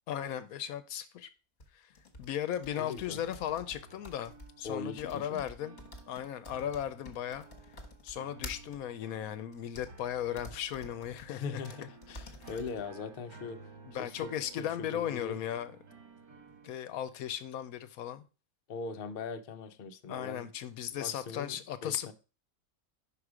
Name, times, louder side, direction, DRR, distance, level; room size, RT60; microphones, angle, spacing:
voice 1, 0.1-1.3 1.7-1.9 2.2-5.8 6.1-7.5 8.0-11.6 12.4-12.5 13.8-15.7 16.6-18.2 20.1-22.1, left 10 dB, 75° left, 1.0 m, -36 dB
sound 1, 1.6-8.8 9.5-9.9 10.4-11.3 11.6-11.8 12.0-12.8, left 1 dB, 35° left, 1.2 m, -49 dB
voice 2, 2.8-3.2 4.6-5.4 11.3-13.6 14.0-15.4 18.7-20.5 20.9-21.6 21.8-22.1, left 5 dB, 55° left, 0.6 m, -40 dB
sound 2, 3.1-16.8, right 3 dB, 80° right, 2.1 m, -54 dB
5.5 x 4.8 x 4.9 m
omnidirectional pair, 1.6 m